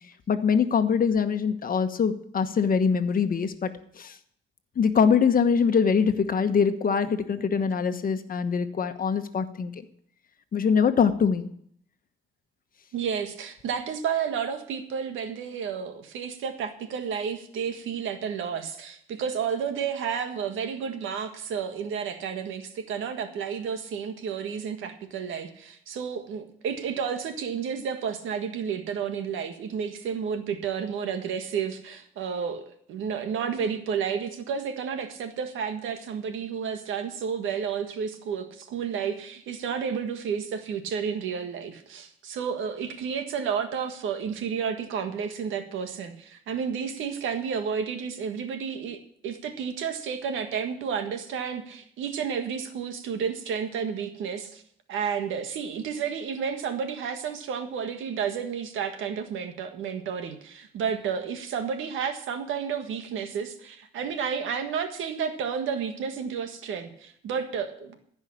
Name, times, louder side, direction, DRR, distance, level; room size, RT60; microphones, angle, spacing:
voice 1, 0.3-3.7 4.0-4.1 4.8-9.7 10.5-11.5, left 6 dB, 45° left, 9 dB, 1.2 m, -23 dB
voice 2, 12.9-54.6 54.9-68.0, right 7 dB, 85° right, 7 dB, 1.7 m, -31 dB
14.5 x 5.6 x 8.5 m, 0.65 s
cardioid pair, 90°, 20 cm